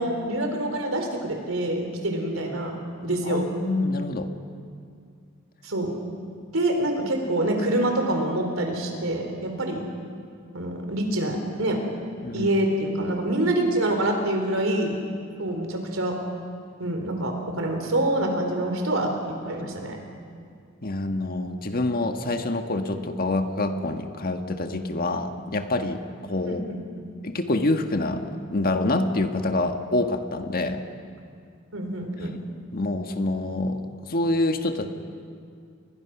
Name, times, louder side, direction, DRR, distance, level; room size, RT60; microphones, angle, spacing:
voice 1, 0.0-2.8 3.0-3.5 5.6-5.9 6.5-9.8 10.5-11.8 12.3-15.0 15.4-16.2 16.8-20.0 26.5-26.8 31.7-32.3, right 1 dB, 80° right, 3 dB, 3.9 m, -26 dB
voice 2, 3.2-4.3 12.2-12.5 20.8-26.7 27.2-28.2 28.5-30.8 32.7-33.8 34.1-34.9, left 2 dB, 45° left, 6 dB, 1.6 m, -26 dB
29.5 x 21.5 x 6.1 m, 2.3 s
head